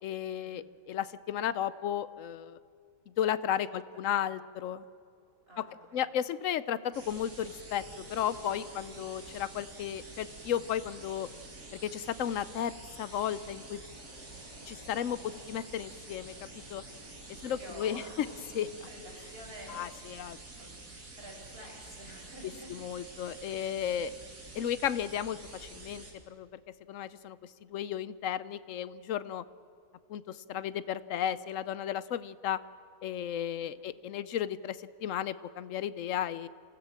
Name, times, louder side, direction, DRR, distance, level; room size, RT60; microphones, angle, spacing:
voice 1, 0.0-2.6 3.2-4.8 5.6-5.7 5.9-11.3 11.8-13.8 14.7-16.3 16.7-16.8 17.4-18.3 18.5-18.7 19.7-20.4 22.7-24.1 24.5-26.6 26.9-27.4 27.7-29.4 30.1-32.6 33.0-36.5, left 10 dB, 65° left, 15 dB, 0.9 m, -34 dB
sound 1, 4.9-18.7, left 1 dB, 20° left, 5.0 m, -56 dB
voice 2, 5.5-6.1 8.4-8.5 17.4-18.4 18.6-20.3 20.6-20.8 21.2-22.7 23.4-24.0 33.6-33.9, right 1 dB, 35° right, 0 dB, 5.1 m, -50 dB
sound 2, 6.9-26.1, right 2 dB, 80° right, 3.5 m, -49 dB
26.5 x 15.5 x 7.5 m, 2.4 s
omnidirectional pair, 1.7 m